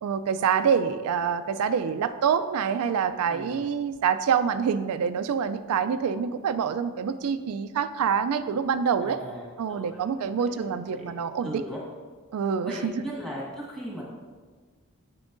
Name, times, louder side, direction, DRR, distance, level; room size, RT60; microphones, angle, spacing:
voice 1, 0.0-9.2 9.6-11.6 12.3-12.9, right 7 dB, 85° right, 11 dB, 0.3 m, -26 dB
voice 2, 3.3-3.6 9.0-10.1 10.4-10.6 10.9-11.0 11.4-11.8 12.6-14.0, equal, ahead, -5 dB, 1.5 m, -38 dB
9.5 x 6.2 x 2.5 m, 1.5 s
head